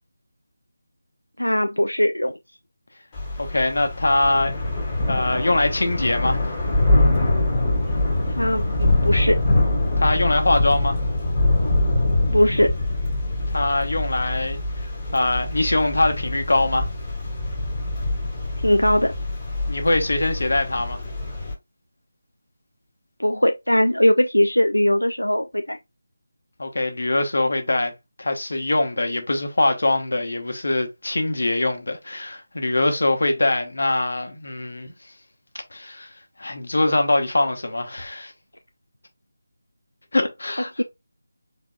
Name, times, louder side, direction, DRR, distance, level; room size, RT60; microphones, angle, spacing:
voice 1, 1.4-2.4 8.3-9.4 12.3-12.7 18.6-19.1 23.2-25.8 40.8-40.9, left 1 dB, 85° left, 0.4 m, -20 dB
Thunder / Rain, 3.1-21.5, left 2 dB, 20° left, 1.8 m, -24 dB
voice 2, 3.4-4.5 5.1-6.4 10.0-11.0 13.5-16.9 19.7-21.0 26.6-27.9 28.2-34.9 35.7-36.1 36.4-38.3 40.1-40.7, left 2 dB, 60° left, 1.1 m, -23 dB
4.2 x 3.7 x 2.3 m
figure-of-eight pair, 160°, 0 cm